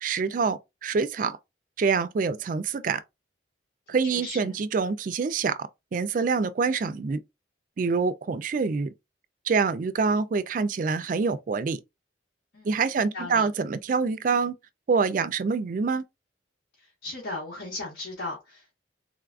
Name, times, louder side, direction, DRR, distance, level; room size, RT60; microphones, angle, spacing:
voice 1, 0.0-1.4 1.8-3.0 3.9-5.5 5.9-7.2 7.8-8.9 9.5-11.8 12.6-14.6 14.9-16.0, right 5 dB, 45° right, 0.3 m, -26 dB
voice 2, 4.1-4.5 12.5-12.7 13.1-13.5 17.0-18.7, left 2 dB, 80° left, 1.4 m, -36 dB
3.8 x 2.3 x 2.4 m
head